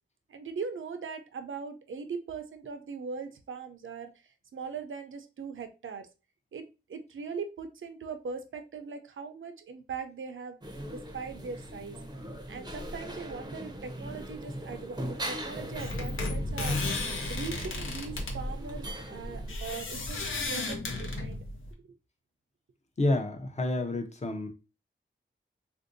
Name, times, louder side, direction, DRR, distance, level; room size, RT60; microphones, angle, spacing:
voice 1, 0.3-4.1 4.5-6.1 6.5-10.6 10.9-12.0 12.5-16.8 17.3-21.4 21.8-21.9, right 5 dB, 80° right, 7 dB, 0.5 m, -40 dB
sound 1, 10.6-19.5, right 1 dB, 20° right, 0.5 m, -40 dB
sound 2, 15.6-21.7, left 2 dB, 80° left, 0.6 m, -34 dB
voice 2, 23.0-24.5, left 2 dB, 35° left, 6 dB, 0.6 m, -29 dB
3.6 x 2.6 x 2.5 m, 0.29 s
wide cardioid pair, 100°, 20 cm